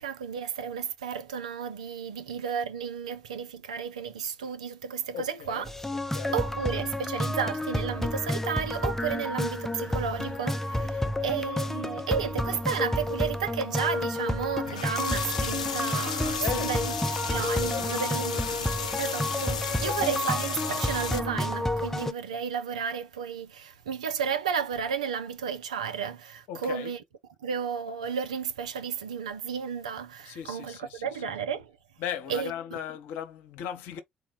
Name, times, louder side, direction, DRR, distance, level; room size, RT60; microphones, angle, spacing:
voice 1, 0.0-5.7 6.3-16.9 17.3-27.0 27.4-31.7 32.3-32.5, right 7 dB, 85° right, 0.5 m, -33 dB
voice 2, 5.1-5.7 6.1-6.4 11.0-11.4 16.4-16.8 17.3-18.0 19.8-20.1 26.5-26.9 30.3-31.2 32.0-34.0, left 9 dB, 70° left, 0.7 m, -37 dB
sound 1, 5.6-22.1, left 1 dB, 10° left, 0.6 m, -30 dB
sound 2, 14.7-21.2, left 6 dB, 90° left, 0.3 m, -34 dB
4.0 x 2.1 x 3.9 m
hypercardioid pair, 45°, 4 cm